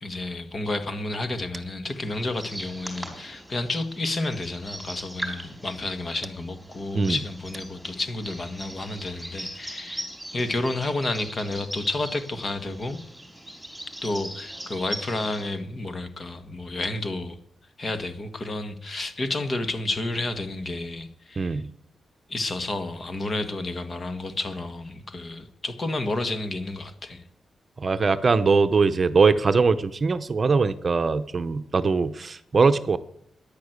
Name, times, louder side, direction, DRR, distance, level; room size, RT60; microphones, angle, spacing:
voice 1, 0.0-13.0 14.0-17.4 17.8-21.6 22.3-27.2, left 2 dB, 35° left, 1.8 m, -31 dB
sound 1, 1.9-15.6, right 1 dB, 5° right, 4.7 m, -40 dB
voice 2, 21.4-21.7 27.8-33.0, right 4 dB, 40° right, 0.8 m, -21 dB
13.5 x 10.5 x 8.1 m
cardioid pair, 105°, 0 cm